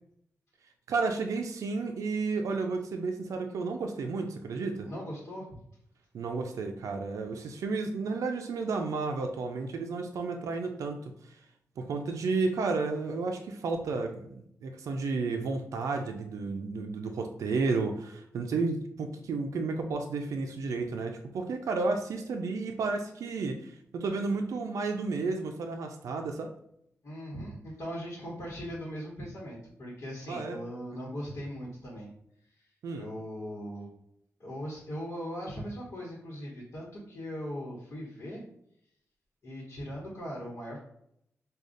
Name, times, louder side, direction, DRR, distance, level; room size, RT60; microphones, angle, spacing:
voice 1, 0.9-4.9 6.1-11.4 11.8-26.5 30.3-30.6 32.8-33.1, right 4 dB, 85° right, 4 dB, 0.4 m, -32 dB
voice 2, 4.8-5.5 27.0-32.1 33.0-33.9 34.4-38.4 39.4-40.8, equal, 60° left, -4 dB, 1.1 m, -39 dB
4.9 x 2.3 x 2.5 m, 0.73 s
wide cardioid pair, 100°, 5 cm